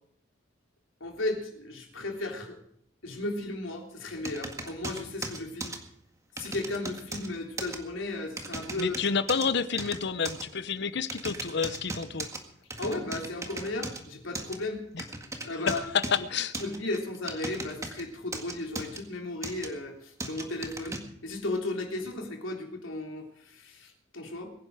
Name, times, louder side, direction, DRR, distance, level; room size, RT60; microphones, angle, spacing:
voice 1, 1.0-2.6 3.0-5.7 6.4-9.0 12.8-14.8 15.4-15.8 16.2-16.3 16.6-24.5, left 2 dB, 75° left, 2 dB, 3.5 m, -35 dB
sound 1, 4.2-5.8 6.4-7.3 7.6-7.8 8.4-9.5 9.8-10.4 11.1-12.4 12.7-14.0 14.3-14.6 15.0-16.2 16.5-18.0 18.3-19.0 19.4-19.7 20.2-21.0, right 2 dB, 15° right, 1.8 m, -37 dB
voice 2, 8.8-12.3 14.9-15.0 15.7-16.5, left 5 dB, 60° left, 14 dB, 0.8 m, -29 dB
22.5 x 10.5 x 4.9 m, 0.71 s
head